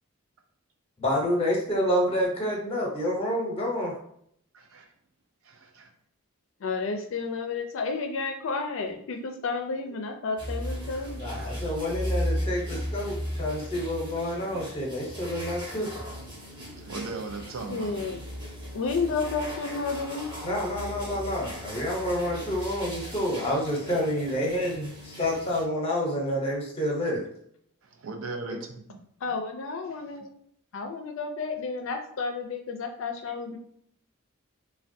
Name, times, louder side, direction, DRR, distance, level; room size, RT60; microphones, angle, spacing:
voice 1, 1.0-3.9 11.2-15.9 20.4-27.2 28.5-28.6, equal, 25° left, -2 dB, 0.7 m, -28 dB
voice 2, 1.7-2.3 4.5-4.9 5.4-5.9 10.9-11.7 13.7-13.8 16.6-18.0 27.8-29.0 29.9-30.2, right 3 dB, 70° right, 4 dB, 0.5 m, -40 dB
voice 3, 6.6-11.3 17.7-18.2 18.7-20.3 29.2-30.3 30.7-33.6, left 4 dB, 65° left, 5 dB, 0.4 m, -31 dB
sound 1, 10.4-25.6, equal, 20° right, 0.8 m, -36 dB
3.3 x 2.2 x 2.6 m, 0.67 s
head